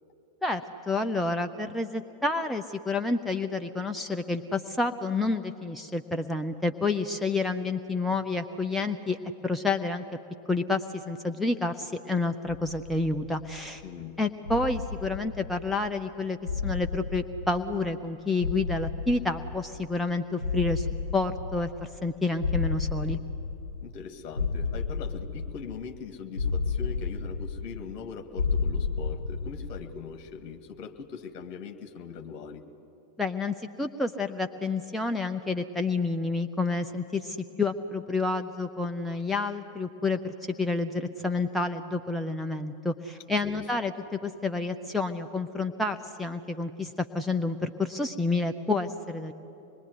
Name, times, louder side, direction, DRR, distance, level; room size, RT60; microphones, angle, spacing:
voice 1, 0.4-9.2 9.4-10.0 10.5-13.8 14.2-16.4 16.6-20.9 21.1-23.2 33.2-43.9 44.2-49.3, left 3 dB, 5° left, 5 dB, 0.8 m, -29 dB
sound 1, 12.5-13.8 14.5-16.0 16.5-18.1 18.4-20.0 20.4-22.1 22.4-24.0 24.4-26.0 26.4-28.0 28.4-30.0, left 4 dB, 80° left, 0.6 m, -32 dB
voice 2, 13.8-14.2 23.8-32.6 43.4-43.6, left 6 dB, 45° left, 7 dB, 1.8 m, -41 dB
25.5 x 21.5 x 9.7 m, 2.9 s
figure-of-eight pair, 90°, 0 cm